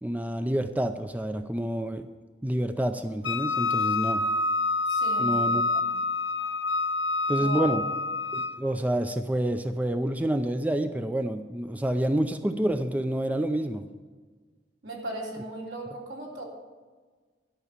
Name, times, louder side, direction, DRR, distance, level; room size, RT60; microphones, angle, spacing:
voice 1, 0.0-2.1 2.4-4.2 5.2-5.6 7.3-7.8 8.3-13.8, right 1 dB, 10° right, 8 dB, 0.4 m, -28 dB
Wind instrument woodwind instrument, 3.2-8.6, left 3 dB, 90° left, 0.9 m, -27 dB
voice 2, 4.9-5.9 7.4-7.7 14.8-16.4, right 1 dB, 75° right, -2 dB, 3.3 m, -37 dB
12.5 x 6.1 x 8.1 m, 1.4 s
head